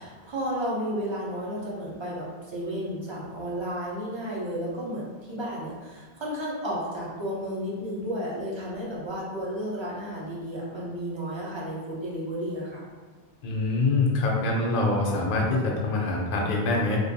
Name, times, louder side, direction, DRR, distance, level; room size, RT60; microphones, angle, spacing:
voice 1, 0.0-12.8, equal, 35° right, -6 dB, 0.5 m, -32 dB
voice 2, 13.4-17.0, left 2 dB, 60° left, -2 dB, 0.6 m, -25 dB
2.5 x 2.2 x 2.6 m, 1.4 s
omnidirectional pair, 1.1 m